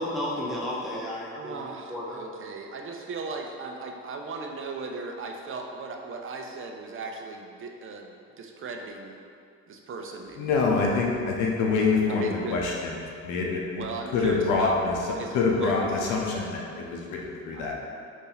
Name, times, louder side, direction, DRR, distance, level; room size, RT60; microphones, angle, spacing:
voice 1, 0.0-2.2, left 1 dB, ahead, -6 dB, 0.7 m, -33 dB
voice 2, 1.3-9.2 9.7-10.8 12.2-12.6 13.8-14.8 15.2-16.2 17.5-17.7, right 4 dB, 45° right, 2 dB, 0.5 m, -37 dB
voice 3, 10.4-15.0 15.3-17.7, left 4 dB, 90° left, -1 dB, 0.7 m, -26 dB
4.0 x 2.7 x 3.9 m, 2.4 s
cardioid pair, 90°, 30 cm